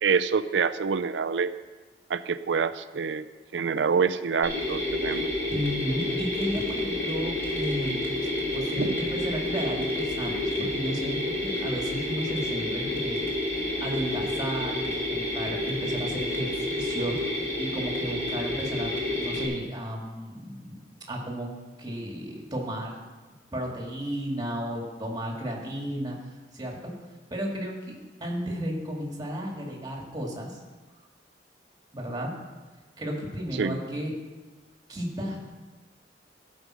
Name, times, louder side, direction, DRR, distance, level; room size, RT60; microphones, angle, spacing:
voice 1, 0.0-1.5 2.1-3.3 3.5-5.3 8.8-8.9 33.6-33.8, right 5 dB, 90° right, 14 dB, 0.5 m, -26 dB
Mechanisms, 4.4-19.5, left 1 dB, 15° left, 2.6 m, -29 dB
voice 2, 5.5-13.2 13.8-21.5 21.8-23.0 23.5-26.2 26.5-26.9 27.3-30.6 31.9-32.3 33.0-34.1 34.9-35.4, equal, 25° right, -1 dB, 2.1 m, -33 dB
15.0 x 5.3 x 6.3 m, 1.3 s
head